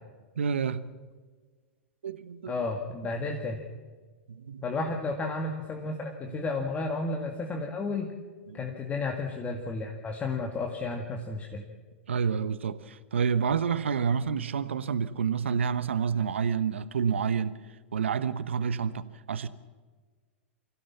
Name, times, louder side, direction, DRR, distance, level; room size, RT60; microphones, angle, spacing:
voice 1, 0.4-0.8 2.0-2.6 4.3-4.6 8.5-8.6 12.1-17.5 17.9-19.5, right 6 dB, 75° right, 1.0 m, -29 dB
voice 2, 2.5-3.6 4.6-8.1 8.5-11.6, left 3 dB, 20° left, 2.1 m, -32 dB
24.5 x 16.0 x 7.3 m
hypercardioid pair, 105°, 6 cm